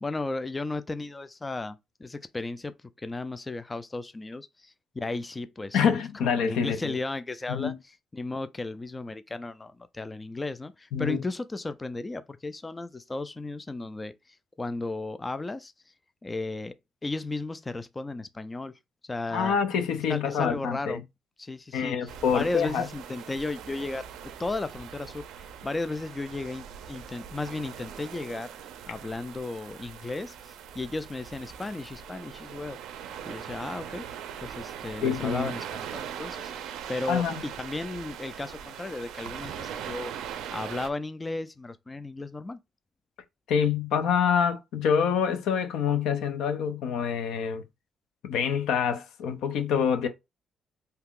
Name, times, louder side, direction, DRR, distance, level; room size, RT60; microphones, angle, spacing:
voice 1, 0.0-6.0 6.2-15.9 16.2-16.7 17.0-18.8 19.1-19.6 20.1-21.0 21.4-28.5 28.9-32.8 33.3-34.1 34.4-36.5 36.9-40.1 40.5-42.6, left 2 dB, 20° left, 0.3 m, -35 dB
voice 2, 5.7-6.9 7.5-7.7 10.9-11.2 19.3-21.0 21.7-22.9 35.0-35.5 37.1-37.4 43.5-47.6 48.2-50.1, left 7 dB, 85° left, 0.5 m, -26 dB
sound 1, 22.1-40.9, right 9 dB, 85° right, 0.4 m, -41 dB
2.8 x 2.4 x 3.6 m
cardioid pair, 90°, 0 cm